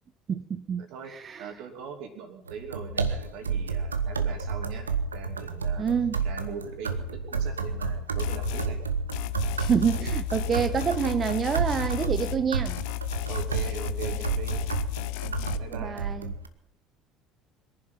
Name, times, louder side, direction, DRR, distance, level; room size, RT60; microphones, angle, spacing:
voice 1, 0.3-1.5 5.8-6.2 9.6-12.8 15.7-16.3, right 7 dB, 35° right, 12 dB, 0.6 m, -28 dB
voice 2, 1.4-5.9 6.2-8.8 13.3-14.7 15.2-16.0, right 6 dB, 60° right, 5 dB, 2.8 m, -41 dB
sound 1, 2.5-16.5, right 4 dB, 85° right, 0.8 m, -31 dB
sound 2, 8.2-8.7 9.1-12.4 12.7-15.6, left 22 dB, 65° left, 0.6 m, -33 dB
22.5 x 11.0 x 5.7 m, 0.77 s
figure-of-eight pair, 60°, 0 cm